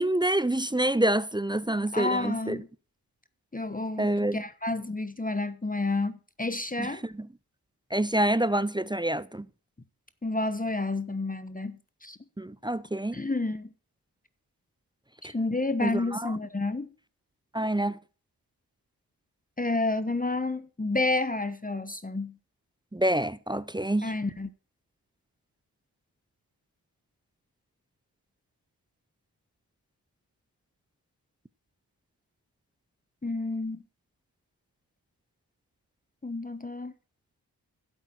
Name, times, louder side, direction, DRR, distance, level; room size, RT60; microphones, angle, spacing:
voice 1, 0.0-2.6 4.0-4.4 6.8-6.9 7.9-9.4 12.4-13.2 15.8-16.3 17.5-18.0 22.9-24.1, right 1 dB, 10° right, 0.6 m, -27 dB
voice 2, 1.9-2.7 3.5-7.0 10.2-12.2 13.1-13.7 15.2-16.9 19.6-22.4 24.0-24.5 33.2-33.8 36.2-36.9, left 2 dB, 20° left, 1.1 m, -30 dB
11.5 x 8.3 x 4.7 m
cardioid pair, 45°, 39 cm